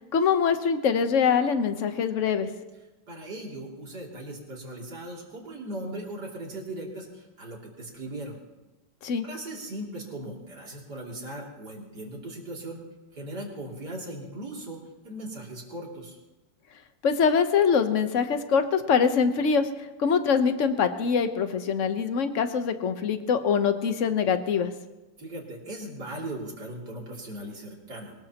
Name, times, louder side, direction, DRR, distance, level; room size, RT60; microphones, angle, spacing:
voice 1, 0.1-2.5 9.0-9.3 17.0-19.7 20.0-24.7, left 6 dB, 50° left, 8 dB, 1.0 m, -24 dB
voice 2, 3.1-8.4 9.2-12.8 13.1-16.2 25.2-28.1, right 1 dB, 50° right, -2 dB, 3.5 m, -38 dB
22.5 x 20.0 x 3.0 m, 1.1 s
omnidirectional pair, 2.4 m